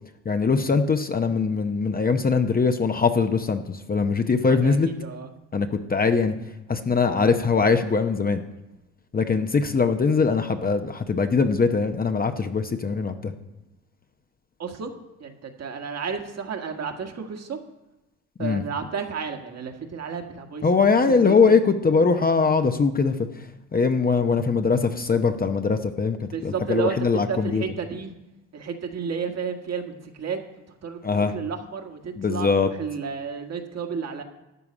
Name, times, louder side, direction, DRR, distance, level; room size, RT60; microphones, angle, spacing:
voice 1, 0.2-4.9 5.5-6.3 6.7-8.4 9.1-13.3 18.4-18.6 20.6-23.2 23.7-27.6 31.0-31.3 32.2-32.7, left 4 dB, 25° left, 7 dB, 0.8 m, -21 dB
voice 2, 4.5-5.3 14.6-14.9 15.2-17.6 18.4-20.7 21.0-21.5 26.3-28.1 28.5-30.4 30.7-34.2, right 6 dB, 45° right, 5 dB, 1.7 m, -32 dB
12.5 x 4.7 x 8.6 m, 0.98 s
supercardioid pair, 75°, 36 cm